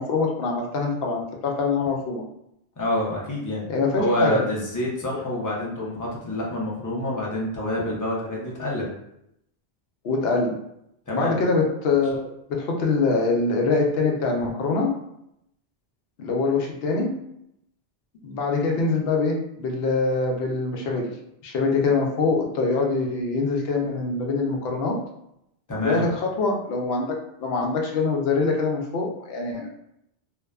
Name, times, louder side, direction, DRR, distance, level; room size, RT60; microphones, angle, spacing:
voice 1, 0.0-2.2 3.7-4.4 10.0-10.6 11.1-14.9 16.2-17.1 18.2-21.1 21.4-25.0 25.8-29.7, left 3 dB, 70° left, 1 dB, 0.8 m, -24 dB
voice 2, 2.8-3.7 4.0-8.9 11.1-11.3 25.7-26.0, left 1 dB, 30° left, -4 dB, 0.4 m, -27 dB
2.6 x 2.2 x 2.2 m, 0.78 s
omnidirectional pair, 1.2 m